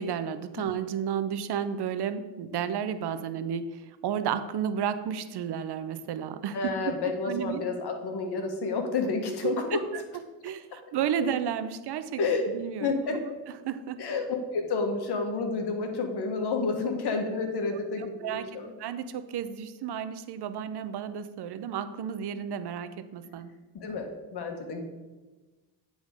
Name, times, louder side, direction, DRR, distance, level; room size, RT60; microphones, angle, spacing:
voice 1, 0.0-6.6 6.8-6.9 7.3-7.6 9.4-9.6 10.4-10.6 10.9-12.2 12.5-12.9 13.6-14.0 18.2-18.4 18.8-23.5, right 8 dB, 65° right, 11 dB, 0.7 m, -32 dB
voice 2, 6.5-10.0 10.7-10.9 12.2-12.5 12.8-13.2 14.0-18.7 23.7-24.8, left 4 dB, 65° left, 5 dB, 1.5 m, -30 dB
9.7 x 4.0 x 4.9 m, 1.2 s
cardioid pair, 90°, 43 cm